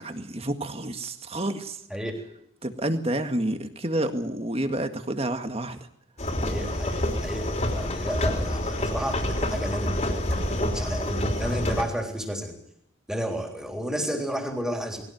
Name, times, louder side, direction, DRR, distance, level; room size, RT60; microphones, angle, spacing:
voice 1, 0.0-1.8 2.6-5.8, right 1 dB, 30° right, 7 dB, 1.9 m, -29 dB
sound 1, 6.2-11.8, left 1 dB, 35° left, 3.3 m, -27 dB
voice 2, 6.4-12.6 13.1-15.0, equal, 5° right, 3 dB, 3.6 m, -32 dB
21.0 x 17.0 x 9.4 m, 0.71 s
head